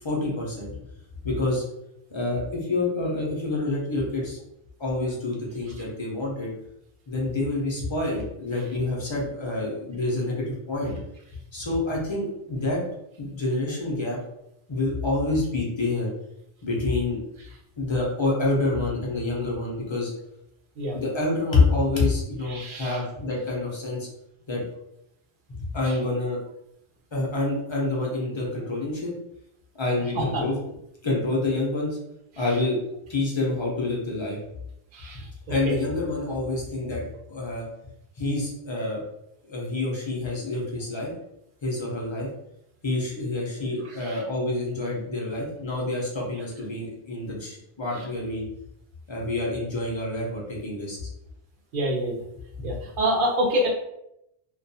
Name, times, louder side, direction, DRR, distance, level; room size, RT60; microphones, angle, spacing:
voice 1, 0.0-0.7 1.2-1.6 2.1-4.4 4.8-6.5 7.1-11.0 11.5-12.8 13.2-14.2 14.7-16.1 16.6-17.2 17.8-20.1 20.9-24.1 24.5-24.6 25.5-26.4 27.1-29.1 29.8-30.6 31.0-31.9 32.4-32.8 33.1-34.4 35.5-37.7 38.2-39.0 39.5-41.1 41.6-42.3 42.8-48.4 49.1-51.0, left 2 dB, 35° left, -3 dB, 0.5 m, -27 dB
voice 2, 22.5-23.0 30.2-30.4 34.9-35.3 35.7-35.8 44.0-44.2 51.7-52.2 52.6-53.7, equal, 60° right, 0 dB, 0.6 m, -26 dB
2.3 x 2.2 x 2.6 m, 0.81 s
omnidirectional pair, 1.2 m